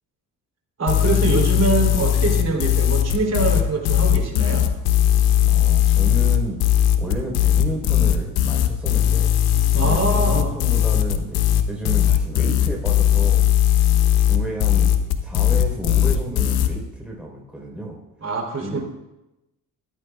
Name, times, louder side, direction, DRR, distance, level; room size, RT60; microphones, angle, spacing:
voice 1, 0.8-4.7 9.7-10.5 18.2-18.8, right 3 dB, 40° right, 1 dB, 3.4 m, -24 dB
sound 1, 0.9-16.7, left 11 dB, 70° left, 1.0 m, -18 dB
voice 2, 5.5-6.6 7.0-9.3 9.7-13.8 14.1-14.9 15.2-18.0 18.6-18.8, right 1 dB, 5° right, -2 dB, 4.1 m, -32 dB
14.0 x 12.5 x 2.4 m, 0.96 s
supercardioid pair, 60°, 38 cm